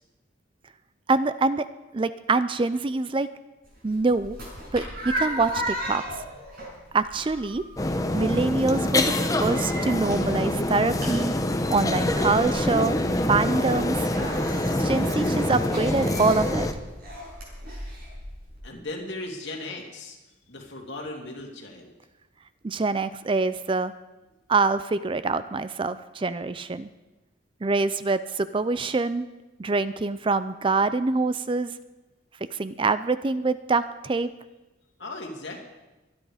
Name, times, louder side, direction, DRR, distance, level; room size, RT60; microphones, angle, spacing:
voice 1, 1.1-1.7 1.9-3.3 3.8-4.4 4.7-6.0 6.9-7.6 8.1-11.3 11.7-13.0 13.3-14.1 14.8-16.7 22.6-23.9 24.5-26.9 27.6-29.3 29.6-31.7 32.5-34.3, right 3 dB, 25° right, 13 dB, 0.4 m, -25 dB
sound 1, 3.6-18.6, equal, 50° right, 6.7 m, -36 dB
sound 2, 7.8-16.7, left 1 dB, 15° left, 0.9 m, -25 dB
voice 2, 18.6-20.2 20.5-21.9 35.0-35.6, left 2 dB, 60° left, 0 dB, 2.8 m, -37 dB
23.5 x 10.5 x 4.9 m, 1.1 s
head